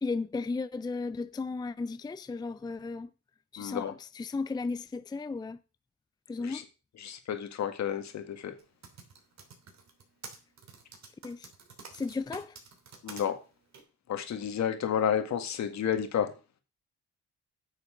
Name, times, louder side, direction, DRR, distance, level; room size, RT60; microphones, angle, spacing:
voice 1, 0.0-3.1 3.5-5.6 6.3-6.7 11.2-11.5 11.9-12.6, left 4 dB, 15° left, 0.5 m, -35 dB
voice 2, 3.6-3.9 6.4-6.6 7.0-8.5 13.0-13.4 14.1-16.3, left 8 dB, 65° left, 1.9 m, -31 dB
Typing, 8.6-13.2 13.7-13.8, right 5 dB, 60° right, 3.2 m, -48 dB
9.8 x 6.9 x 5.2 m
cardioid pair, 90°, 30 cm